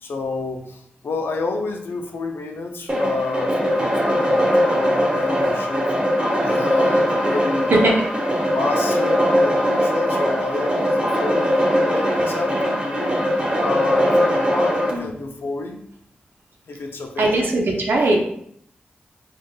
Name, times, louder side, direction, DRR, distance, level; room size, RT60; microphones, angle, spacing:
voice 1, 0.0-5.9 6.4-7.7 8.5-11.5 11.8-13.2 13.6-15.8 16.7-17.4, left 3 dB, 80° left, 3 dB, 0.5 m, -29 dB
sound 1, 2.9-14.9, equal, 30° right, 0.9 m, -20 dB
voice 2, 17.2-18.2, right 2 dB, 75° right, 0 dB, 0.7 m, -19 dB
3.8 x 2.4 x 2.2 m, 0.69 s
cardioid pair, 60°, 4 cm